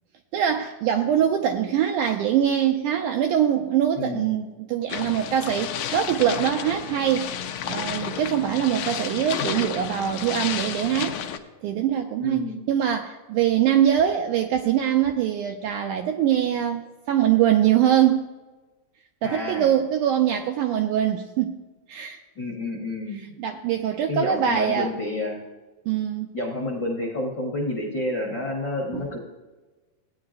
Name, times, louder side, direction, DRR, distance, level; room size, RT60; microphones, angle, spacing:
voice 1, 0.3-7.3 7.7-11.2 11.6-16.8 17.1-18.2 19.2-21.6 21.9-22.2 23.4-24.9 25.9-26.3 28.9-29.0, right 10 dB, 85° right, 4 dB, 1.8 m, -23 dB
voice 2, 4.0-4.3 12.2-12.6 19.2-19.7 22.3-23.3 24.1-25.4 26.3-29.2, left 2 dB, 50° left, -2 dB, 1.3 m, -29 dB
sound 1, 4.9-11.4, left 9 dB, 75° left, 2.0 m, -31 dB
17.0 x 9.4 x 2.5 m, 1.2 s
omnidirectional pair, 4.1 m